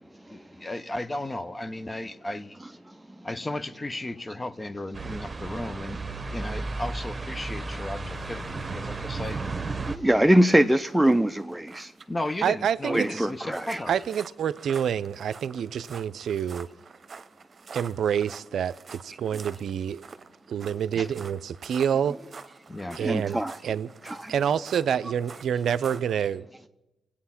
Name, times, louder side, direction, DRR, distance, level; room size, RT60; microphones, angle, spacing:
voice 1, 0.1-2.6 3.2-6.0 6.3-9.4 10.2-10.7 12.1-13.9 20.9-21.1 22.7-23.0, left 1 dB, 25° left, 0.9 m, -35 dB
sound 1, 4.9-10.0, right 3 dB, 35° right, 1.3 m, -33 dB
sound 2, 8.1-26.1, right 5 dB, 50° right, 1.0 m, -48 dB
voice 2, 9.8-11.9 12.9-13.8 22.8-23.6 24.0-24.3, right 1 dB, 5° right, 0.6 m, -23 dB
voice 3, 12.4-13.3 13.9-16.7 17.7-20.0 20.5-22.2 23.0-23.9 24.3-26.5, right 8 dB, 75° right, 0.5 m, -27 dB
24.5 x 8.6 x 5.8 m
supercardioid pair, 50°, 0 cm